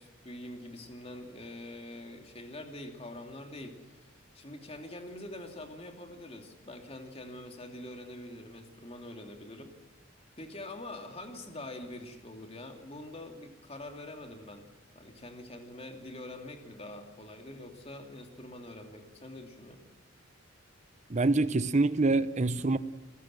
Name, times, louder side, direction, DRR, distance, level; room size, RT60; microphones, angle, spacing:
voice 1, 0.0-9.7 10.4-14.7 14.9-19.8, left 1 dB, 30° left, 2.8 m, -45 dB
voice 2, 21.1-22.8, right 3 dB, 35° right, 0.8 m, -25 dB
28.5 x 16.0 x 7.6 m
head